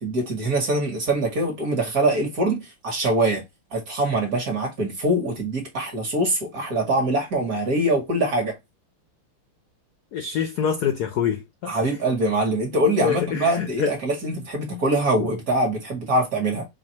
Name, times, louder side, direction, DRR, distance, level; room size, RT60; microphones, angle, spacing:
voice 1, 0.0-3.4 3.7-8.6 11.6-16.7, right 1 dB, 50° right, 1.4 m, -23 dB
voice 2, 10.1-11.9 13.0-14.0, left 8 dB, 80° left, 0.9 m, -26 dB
4.9 x 2.4 x 2.8 m
omnidirectional pair, 2.4 m